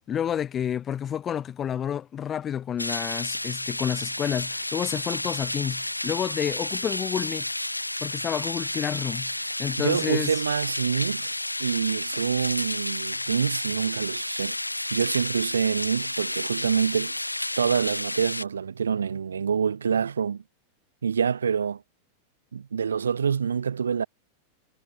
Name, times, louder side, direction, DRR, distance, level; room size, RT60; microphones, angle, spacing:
voice 1, 0.1-7.5 8.0-10.4, left 9 dB, 25° left, 3.9 m, -30 dB
sound 1, 2.8-18.4, left 1 dB, 85° left, 6.0 m, -31 dB
voice 2, 9.8-11.3 11.6-14.6 14.9-17.2 17.6-20.4 21.0-21.8 22.5-24.1, right 6 dB, 70° right, 5.5 m, -26 dB
figure-of-eight pair, 90°, 0 cm